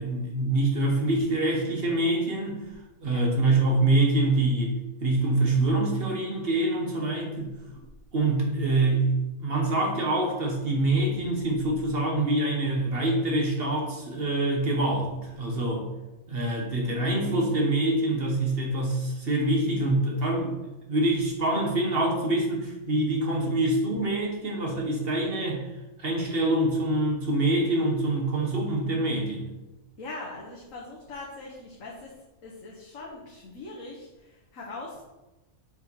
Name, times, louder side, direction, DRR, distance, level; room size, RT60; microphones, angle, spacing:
voice 1, 0.0-2.6 3.0-7.5 8.1-15.9 16.3-20.6 20.9-25.6 26.0-29.5, right 2 dB, 45° right, 0 dB, 1.5 m, -25 dB
voice 2, 30.0-32.1 32.4-35.0, left 2 dB, 70° left, -4 dB, 1.5 m, -41 dB
6.5 x 4.6 x 4.7 m, 1.1 s
omnidirectional pair, 1.5 m